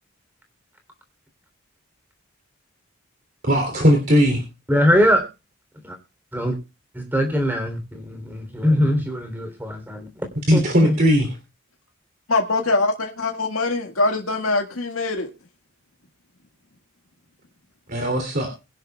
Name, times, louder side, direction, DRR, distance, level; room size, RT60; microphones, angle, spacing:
voice 1, 3.4-4.4 10.5-11.3 17.9-18.5, equal, 45° right, 3.2 m, -18 dB
voice 2, 4.7-5.3 5.8-6.0 6.3-6.6 6.9-10.1 10.5-11.0, equal, 10° right, 3.4 m, -21 dB
voice 3, 12.3-15.3, left 2 dB, 80° left, 1.8 m, -23 dB
22.5 x 10.5 x 2.4 m
head